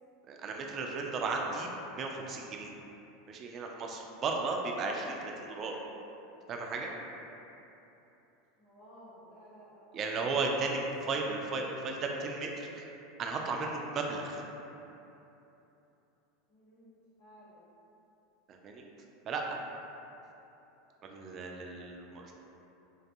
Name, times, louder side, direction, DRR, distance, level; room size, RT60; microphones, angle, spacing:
voice 1, 0.3-2.7 3.3-5.8 6.5-6.9 9.9-14.4 18.5-18.9 19.3-19.6 21.0-22.3, right 3 dB, 40° right, 1 dB, 0.3 m, -35 dB
voice 2, 8.6-10.1 11.0-11.2 16.5-17.6, equal, 60° left, -12 dB, 0.8 m, -56 dB
2.5 x 2.2 x 2.6 m, 2.9 s
figure-of-eight pair, 80°, 0 cm